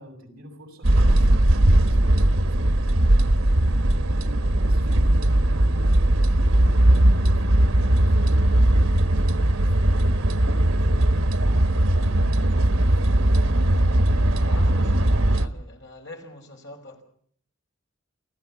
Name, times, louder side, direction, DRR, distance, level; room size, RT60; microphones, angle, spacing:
voice 1, 0.0-3.0 3.6-13.3, equal, 50° right, 6.6 m, -46 dB
sound 1, 0.8-15.5, right 1 dB, 85° right, 1.3 m, -19 dB
voice 2, 14.4-17.0, left 2 dB, 60° left, 5.4 m, -44 dB
28.5 x 15.0 x 7.2 m
head